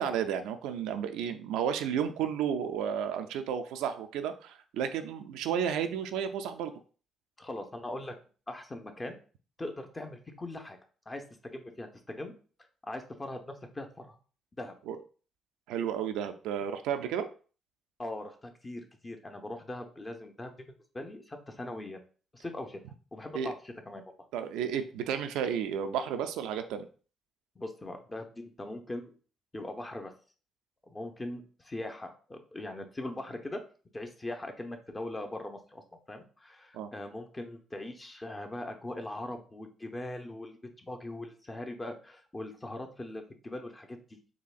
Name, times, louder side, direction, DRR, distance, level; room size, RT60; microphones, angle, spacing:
voice 1, 0.0-6.7 14.9-15.0 15.7-17.3 23.3-23.5 24.3-26.9 36.7-36.9, right 8 dB, 80° right, 8 dB, 0.3 m, -32 dB
voice 2, 7.4-8.1 8.5-9.2 9.6-10.8 11.1-11.2 11.5-12.3 12.8-14.2 14.6-14.8 18.0-20.5 20.9-22.0 22.3-22.8 23.1-24.2 27.6-29.1 29.5-30.1 30.9-33.6 33.9-44.0, left 1 dB, 25° left, 5 dB, 0.8 m, -40 dB
4.1 x 2.8 x 2.4 m, 0.38 s
hypercardioid pair, 50°, 0 cm